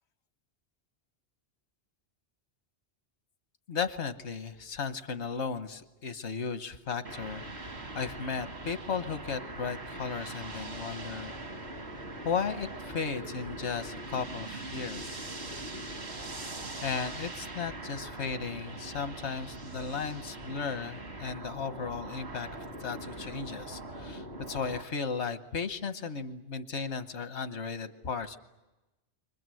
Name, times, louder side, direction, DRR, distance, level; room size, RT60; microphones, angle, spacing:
voice 1, 3.7-11.3 12.2-15.2 16.8-22.5 22.8-28.4, left 5 dB, 80° left, 10 dB, 1.4 m, -35 dB
sound 1, 7.0-24.8, right 2 dB, 75° right, 2.4 m, -42 dB
29.5 x 24.5 x 7.7 m, 1.1 s
omnidirectional pair, 1.1 m